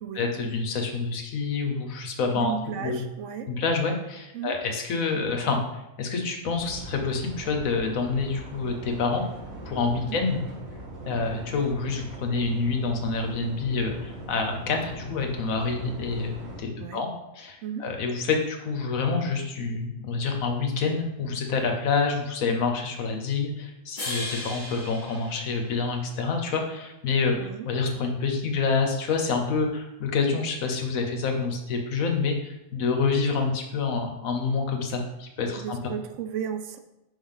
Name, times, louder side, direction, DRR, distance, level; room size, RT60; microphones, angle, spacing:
voice 1, 0.1-2.5 2.8-3.0 3.5-9.2 9.7-10.4 11.0-16.3 16.6-17.1 17.4-35.8, left 4 dB, 80° left, 3 dB, 1.3 m, -27 dB
voice 2, 2.3-3.5 4.3-4.6 9.9-10.2 16.8-17.0 17.6-17.9 27.3-27.7 35.6-36.8, right 8 dB, 70° right, 8 dB, 0.9 m, -34 dB
sound 1, 6.5-16.6, right 2 dB, 90° right, 1.8 m, -41 dB
sound 2, 24.0-26.3, left 2 dB, 40° left, 1.3 m, -37 dB
5.5 x 3.6 x 5.6 m, 0.91 s
omnidirectional pair, 1.4 m